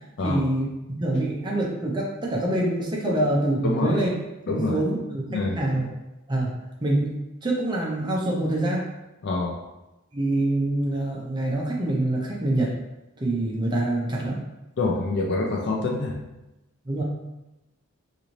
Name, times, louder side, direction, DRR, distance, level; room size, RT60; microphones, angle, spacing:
voice 1, 0.2-4.1 4.5-5.2 5.5-5.9 6.3-6.5 6.8-7.2 7.4-8.9 10.1-12.7 13.2-14.4 16.9-17.0, right 1 dB, 20° right, -2 dB, 0.5 m, -25 dB
voice 2, 3.6-4.0 4.5-4.8 5.3-5.6 9.2-9.6 14.8-16.2, left 3 dB, 50° left, -1 dB, 0.4 m, -26 dB
3.9 x 2.5 x 3.0 m, 0.98 s
head